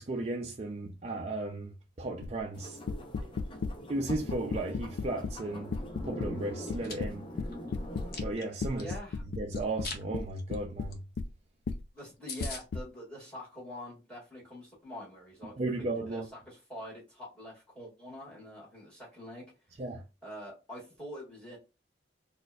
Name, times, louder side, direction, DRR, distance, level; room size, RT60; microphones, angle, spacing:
voice 1, 0.0-2.8 3.9-5.7 6.0-7.2 8.2-8.8 9.4-11.0 15.6-16.3 19.8-20.0, right 2 dB, 35° right, 0.4 m, -35 dB
sound 1, 2.2-2.4 2.9-3.8 4.1-5.4 5.7-6.3 6.7-8.3 8.6-11.3 11.7-11.8 12.4-12.8, left 4 dB, 75° left, 0.3 m, -35 dB
sound 2, 2.5-8.2, equal, 30° left, 0.6 m, -44 dB
Chewing mastication, 6.6-6.9 7.5-8.9 9.5-10.0 10.4-10.5 10.9-11.0 11.3-11.4 11.7-11.8 12.0-12.1 12.3-12.6, left 4 dB, 55° left, 0.8 m, -41 dB
voice 2, 8.7-9.2 11.9-15.6 16.1-19.4 20.2-21.6, equal, 5° left, 1.7 m, -45 dB
4.2 x 2.5 x 2.3 m
head